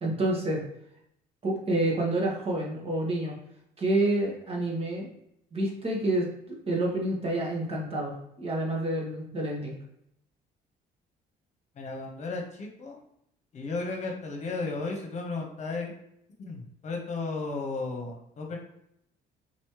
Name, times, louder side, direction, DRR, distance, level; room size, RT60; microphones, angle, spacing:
voice 1, 0.0-0.6 1.4-3.4 3.8-5.1 5.5-9.7, right 1 dB, 35° right, -2 dB, 1.5 m, -28 dB
voice 2, 11.8-13.0 13.5-15.9 16.4-18.6, left 3 dB, 45° left, 1 dB, 1.1 m, -34 dB
4.2 x 3.0 x 3.2 m, 0.76 s
cardioid pair, 110°, 17 cm